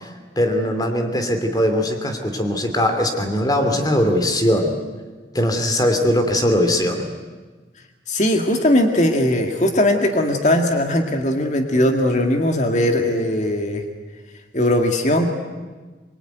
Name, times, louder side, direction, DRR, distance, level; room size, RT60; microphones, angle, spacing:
voice 1, 0.4-4.7 5.3-7.1, left 1 dB, 20° left, 5 dB, 2.8 m, -20 dB
voice 2, 8.1-13.8 14.5-15.3, left 1 dB, 40° left, 4 dB, 2.1 m, -19 dB
24.5 x 22.5 x 9.3 m, 1.3 s
head